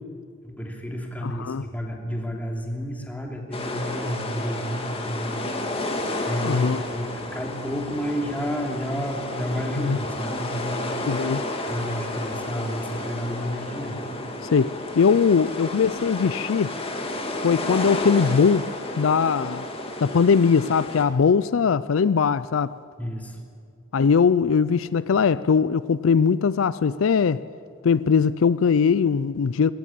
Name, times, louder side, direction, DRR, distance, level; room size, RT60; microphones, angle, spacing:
voice 1, 0.4-5.4 6.2-6.6 6.9-11.2 11.7-14.0 23.0-23.4, equal, 10° left, 2.9 m, -31 dB
voice 2, 1.2-1.6 6.4-6.8 9.8-10.0 11.1-11.5 14.5-16.7 17.4-18.7 19.0-19.7 20.0-22.7 23.9-27.4 27.8-29.7, left 6 dB, 70° left, 0.4 m, -20 dB
sound 1, 3.5-21.0, left 1 dB, 30° left, 2.2 m, -31 dB
20.5 x 17.5 x 8.6 m
head